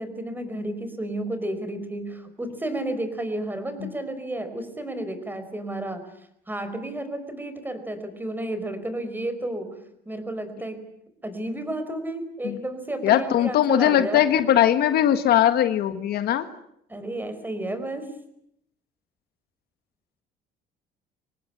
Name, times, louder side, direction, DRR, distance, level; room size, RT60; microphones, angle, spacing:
voice 1, 0.0-6.0 6.5-9.7 10.0-10.9 11.2-14.3 16.9-18.1, right 1 dB, 10° right, 9 dB, 4.8 m, -32 dB
voice 2, 13.0-16.5, left 11 dB, 70° left, 10 dB, 1.7 m, -20 dB
25.5 x 18.5 x 9.8 m, 0.76 s
cardioid pair, 110°, 17 cm